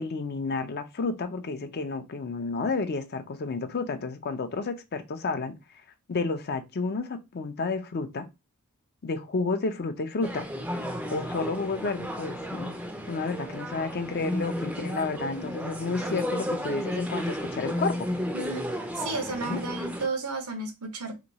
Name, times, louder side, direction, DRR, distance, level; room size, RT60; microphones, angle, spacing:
voice 1, 0.0-5.6 6.1-8.3 9.0-10.5 11.1-12.8 13.1-18.1 19.5-19.6, left 4 dB, 45° left, 0.5 m, -31 dB
sound 1, 10.2-20.1, equal, 5° right, 0.4 m, -33 dB
voice 2, 18.3-18.7 18.9-21.1, right 3 dB, 80° right, 0.9 m, -33 dB
2.9 x 2.3 x 4.0 m
head